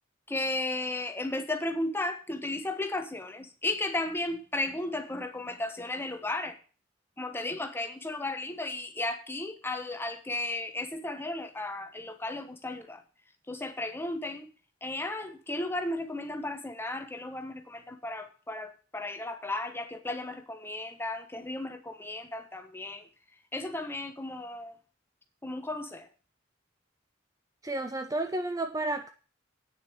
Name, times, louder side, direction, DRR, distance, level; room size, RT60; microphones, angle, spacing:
voice 1, 0.3-6.6 7.2-13.0 13.5-14.5 14.8-23.1 23.5-24.7 25.4-26.1, left 2 dB, 10° left, 6 dB, 1.3 m, -34 dB
voice 2, 27.6-29.1, right 2 dB, 15° right, 7 dB, 0.7 m, -31 dB
9.1 x 6.7 x 8.7 m, 0.38 s
head